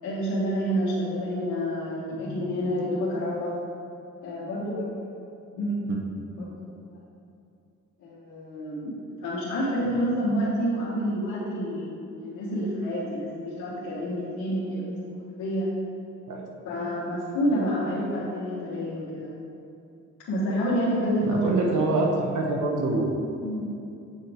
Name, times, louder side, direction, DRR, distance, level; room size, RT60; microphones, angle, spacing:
voice 1, 0.0-3.6 4.2-4.9 5.6-6.0 6.4-6.5 8.0-15.1 15.4-15.7 16.6-19.3 20.3-22.4 23.4-23.7, equal, 75° left, -10 dB, 1.6 m, -28 dB
voice 2, 21.3-23.2, right 2 dB, 75° right, 0 dB, 1.2 m, -25 dB
8.3 x 4.7 x 3.6 m, 2.7 s
cardioid pair, 90°, 30 cm